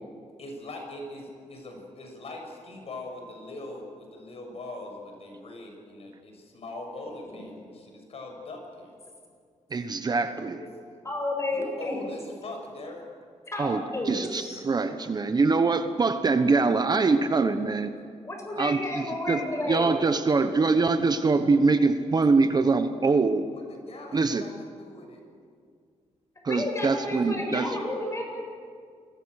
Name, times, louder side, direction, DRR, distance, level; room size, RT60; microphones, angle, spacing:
voice 1, 0.4-8.9 10.4-10.7 11.5-13.0 19.5-19.6 23.5-25.2, left 2 dB, 55° left, 2 dB, 6.7 m, -41 dB
voice 2, 9.7-10.6 13.6-17.9 18.6-23.5 24.1-24.4 26.4-27.7, right 4 dB, 35° right, 9 dB, 1.1 m, -24 dB
voice 3, 11.0-12.0 13.5-14.6 18.2-20.0 26.5-28.2, left 1 dB, 25° left, 1 dB, 7.4 m, -31 dB
28.5 x 21.5 x 6.5 m, 2.1 s
cardioid pair, 120°, 12 cm